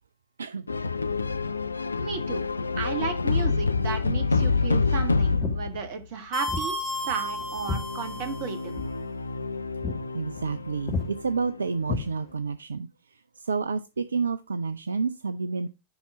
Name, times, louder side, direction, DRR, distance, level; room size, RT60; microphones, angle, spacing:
sound 1, 0.7-5.9 7.0-11.9, left 4 dB, 80° left, 0.4 m, -28 dB
voice 1, 2.0-2.4 2.8-8.8, right 5 dB, 50° right, 1.7 m, -34 dB
Walk footsteps, 4.3-4.6 5.4-5.6 6.5-6.7 7.0-8.5 8.7-8.9 9.4-9.5 9.8-10.0 10.3-10.6 10.9-11.1 11.8-12.5, left 4 dB, 30° left, 1.8 m, -32 dB
sound 2, 6.3-8.7, equal, 15° right, 3.1 m, -33 dB
voice 2, 10.1-12.9 13.4-15.7, right 5 dB, 75° right, 0.4 m, -29 dB
7.1 x 5.7 x 4.9 m
figure-of-eight pair, 90°, 0 cm